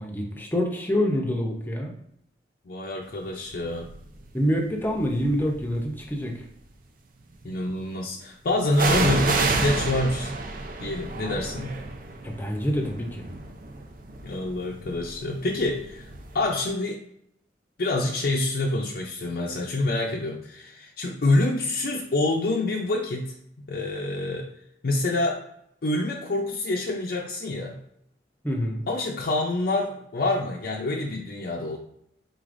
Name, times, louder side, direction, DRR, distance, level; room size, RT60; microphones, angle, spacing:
voice 1, 0.0-1.9 4.3-6.4 12.2-13.3 28.4-28.8, equal, 10° left, 1 dB, 0.6 m, -26 dB
voice 2, 2.7-3.9 7.4-10.3 10.8-11.7 14.2-16.1 16.3-17.0 17.8-23.3 23.7-24.5 24.8-25.4 25.8-27.8 28.9-31.8, left 2 dB, 55° left, -1 dB, 0.5 m, -26 dB
sound 1, 3.8-4.1 4.9-5.8 8.7-16.4 16.6-16.7, right 3 dB, 50° right, 0.5 m, -29 dB
4.8 x 3.9 x 2.5 m, 0.74 s
head